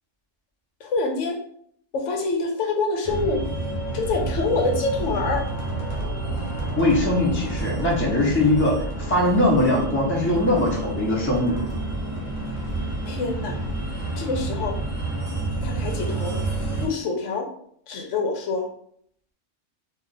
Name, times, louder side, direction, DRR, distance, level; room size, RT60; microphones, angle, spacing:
voice 1, 0.8-1.4 1.9-3.4 3.9-5.5 13.1-13.6 14.2-14.8 15.6-16.4 16.8-17.5 17.9-18.7, left 3 dB, 80° left, 2 dB, 0.9 m, -26 dB
sound 1, 3.0-16.9, right 2 dB, 35° left, 1.0 m, -29 dB
voice 2, 6.8-11.7, left 1 dB, 10° left, -5 dB, 0.7 m, -21 dB
2.4 x 2.3 x 3.8 m, 0.65 s
omnidirectional pair, 1.3 m